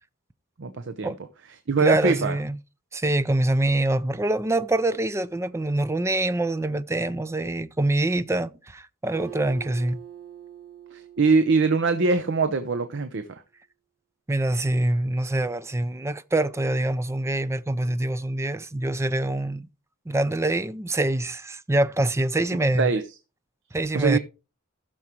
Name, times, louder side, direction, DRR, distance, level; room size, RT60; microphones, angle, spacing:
voice 1, 0.6-1.1 1.7-2.4 10.9-13.3 22.8-23.1 23.9-24.2, right 4 dB, 60° right, 0.7 m, -22 dB
voice 2, 1.8-2.6 2.9-10.0 14.3-19.7 20.1-22.9 23.7-24.2, right 1 dB, 15° right, 0.4 m, -25 dB
Acoustic guitar, 9.1-12.7, right 9 dB, 75° right, 2.2 m, -44 dB
15.5 x 6.3 x 3.0 m
head